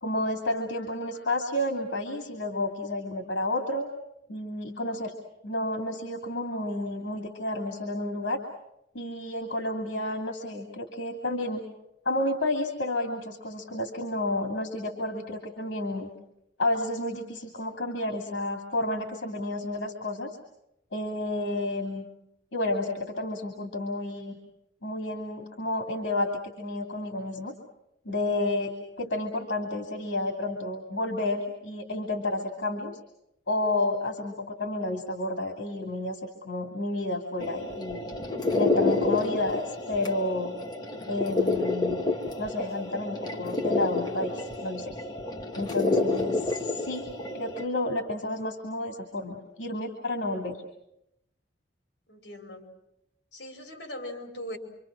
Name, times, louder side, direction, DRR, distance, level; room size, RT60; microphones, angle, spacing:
voice 1, 0.0-3.9 4.3-5.1 5.4-8.4 8.9-11.6 12.0-16.1 16.6-20.3 20.9-22.1 22.5-24.4 24.8-26.3 26.6-27.6 28.0-32.9 33.5-38.0 38.5-40.6 41.1-42.0 42.4-44.9 45.5-47.1 47.3-50.6, left 1 dB, 80° left, 3 dB, 2.7 m, -31 dB
sound 1, 37.4-47.6, left 2 dB, 25° left, 1.8 m, -29 dB
voice 2, 52.1-52.7 53.3-54.6, left 1 dB, 65° left, 3 dB, 4.9 m, -40 dB
27.0 x 25.5 x 6.1 m, 0.83 s
head